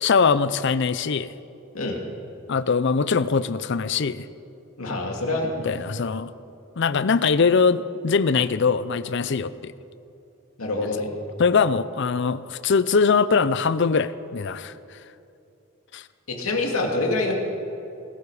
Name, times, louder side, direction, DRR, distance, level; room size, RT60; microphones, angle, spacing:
voice 1, 0.0-1.3 2.5-4.3 5.6-6.3 6.8-9.7 11.4-14.7 15.9-16.0, left 5 dB, 55° left, 15 dB, 0.5 m, -22 dB
voice 2, 4.8-5.5 10.6-11.1 16.3-17.3, left 2 dB, 90° left, 1 dB, 2.3 m, -25 dB
21.5 x 12.0 x 4.9 m, 2.7 s
head